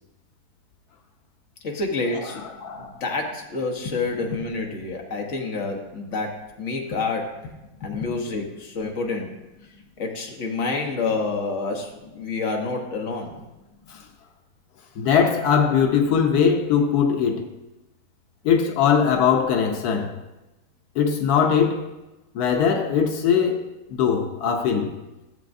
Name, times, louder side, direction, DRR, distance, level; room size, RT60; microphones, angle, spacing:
voice 1, 1.6-2.4 2.7-7.4 7.8-9.3 10.0-13.4, left 3 dB, 55° left, 1.5 m, -28 dB
voice 2, 2.4-3.0 13.9-14.1 15.0-17.5 18.4-20.1 20.9-21.9 22.3-24.9, left 7 dB, 90° left, 1.3 m, -21 dB
14.0 x 7.5 x 2.6 m
omnidirectional pair, 1.6 m